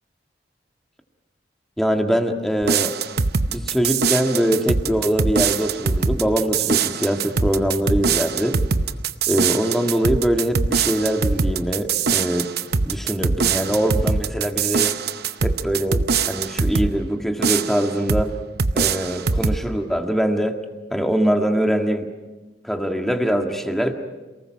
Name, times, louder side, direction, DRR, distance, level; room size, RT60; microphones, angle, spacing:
voice 1, 1.8-2.9 3.5-8.6 9.3-12.5 12.8-14.9 15.4-18.3 18.7-20.6 20.9-22.1 22.6-23.9, equal, ahead, 4 dB, 1.8 m, -22 dB
sound 1, 2.6-16.9 17.4-18.3 18.6-19.6, right 5 dB, 65° right, 0.8 m, -22 dB
28.0 x 19.5 x 6.4 m, 1.2 s
head